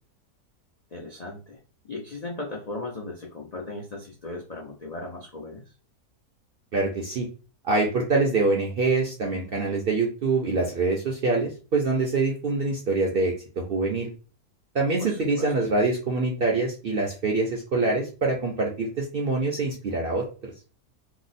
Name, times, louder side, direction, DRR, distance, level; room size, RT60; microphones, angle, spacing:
voice 1, 0.9-1.6 1.9-5.7 15.0-15.5, left 2 dB, 65° left, -1 dB, 0.4 m, -37 dB
voice 2, 6.7-7.3 7.6-14.1 14.7-20.5, right 3 dB, 60° right, 0 dB, 0.6 m, -25 dB
2.9 x 2.0 x 4.0 m, 0.34 s
omnidirectional pair, 1.6 m